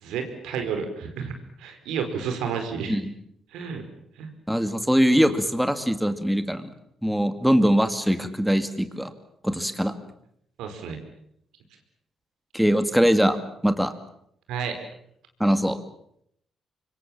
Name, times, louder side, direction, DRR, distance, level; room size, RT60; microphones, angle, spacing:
voice 1, 0.0-3.0 3.5-3.8 4.2-4.3 10.6-11.0 14.5-14.8, right 6 dB, 90° right, 6 dB, 4.7 m, -31 dB
voice 2, 4.5-6.7 7.0-9.1 9.4-9.9 12.5-13.4 13.6-13.9 15.4-15.8, equal, ahead, 9 dB, 2.2 m, -22 dB
25.5 x 23.5 x 7.4 m, 0.71 s
cardioid pair, 90°, 0 cm